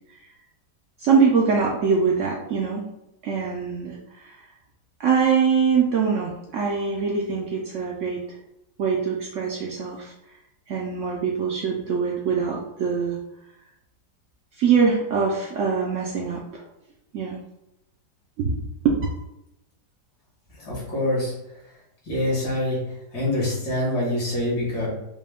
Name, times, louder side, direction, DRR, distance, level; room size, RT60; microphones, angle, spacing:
voice 1, 1.0-2.8 3.2-4.0 4.3-4.4 5.0-8.2 8.8-10.1 10.7-13.2 14.6-16.4 17.1-17.4 18.4-18.6 18.8-19.1, right 5 dB, 70° right, -2 dB, 0.7 m, -23 dB
voice 2, 20.6-21.3 22.1-22.8 23.1-24.9, left 1 dB, 75° left, -5 dB, 2.2 m, -25 dB
4.9 x 2.2 x 3.5 m, 0.87 s
omnidirectional pair, 1.8 m